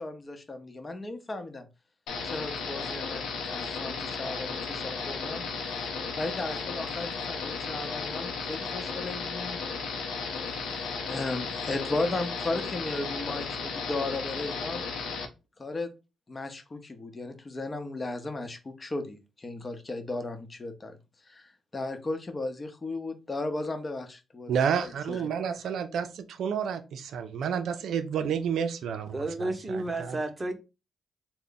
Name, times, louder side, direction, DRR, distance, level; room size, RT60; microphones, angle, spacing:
voice 1, 0.0-1.7 2.2-5.5 6.2-9.6 10.5-14.8 15.6-15.9 16.3-21.0 21.3-25.3, left 2 dB, 30° left, 0.8 m, -35 dB
sound 1, 2.1-15.3, left 4 dB, 90° left, 0.7 m, -34 dB
voice 2, 24.5-29.1 29.4-30.2, right 7 dB, 80° right, 0.4 m, -30 dB
voice 3, 29.1-30.5, right 2 dB, 25° right, 0.8 m, -31 dB
3.4 x 2.1 x 3.9 m
cardioid pair, 75°, 0 cm